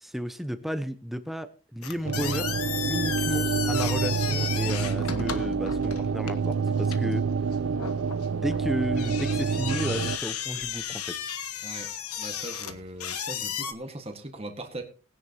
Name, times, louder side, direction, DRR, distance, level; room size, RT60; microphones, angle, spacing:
voice 1, 0.0-2.5 2.9-7.3 8.3-11.2, equal, ahead, 0.8 m, -33 dB
sound 1, 1.8-13.7, left 8 dB, 80° left, 1.3 m, -34 dB
sound 2, 2.0-10.2, right 5 dB, 70° right, 0.5 m, -27 dB
voice 2, 12.2-14.8, right 1 dB, 25° right, 1.6 m, -39 dB
20.0 x 10.0 x 2.9 m
head